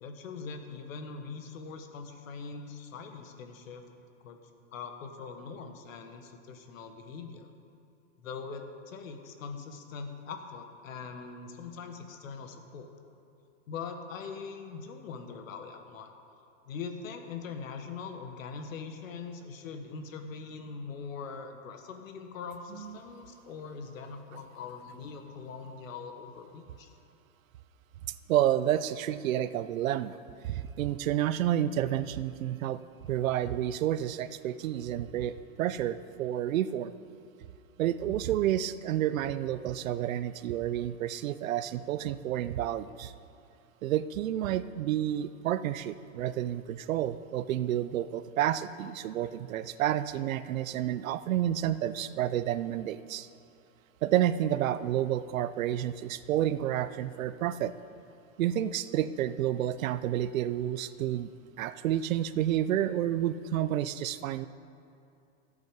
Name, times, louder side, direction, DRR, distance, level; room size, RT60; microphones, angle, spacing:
voice 1, 0.0-3.8 4.2-4.4 4.7-7.5 8.2-12.9 13.7-16.1 16.7-26.9, left 5 dB, 80° left, 6 dB, 1.5 m, -42 dB
voice 2, 28.3-30.2 30.4-32.8 33.1-36.9 37.8-43.1 43.8-53.3 54.0-57.7 58.4-61.3 61.6-64.5, right 11 dB, 90° right, 14 dB, 0.6 m, -30 dB
14.0 x 8.2 x 5.2 m, 2.6 s
supercardioid pair, 160°, 39 cm